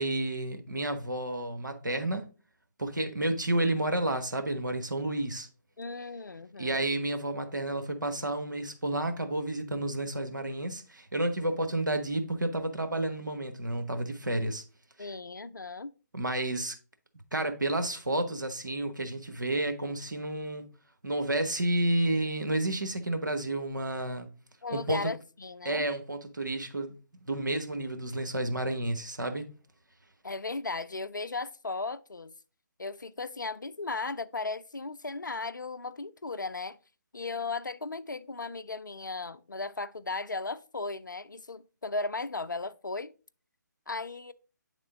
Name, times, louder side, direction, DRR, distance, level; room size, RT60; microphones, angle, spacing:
voice 1, 0.0-2.2 2.8-5.5 6.6-14.6 15.0-15.1 16.1-16.7 17.3-20.7 21.0-24.3 24.7-25.1 25.6-26.9 27.2-29.5, right 1 dB, 85° right, 0.9 m, -31 dB
voice 2, 5.8-6.9 15.0-15.9 24.6-25.9 30.2-32.3 32.8-36.8 37.1-43.1 43.9-44.3, left 3 dB, 85° left, 0.4 m, -36 dB
8.4 x 3.6 x 3.6 m
figure-of-eight pair, 140°, 10 cm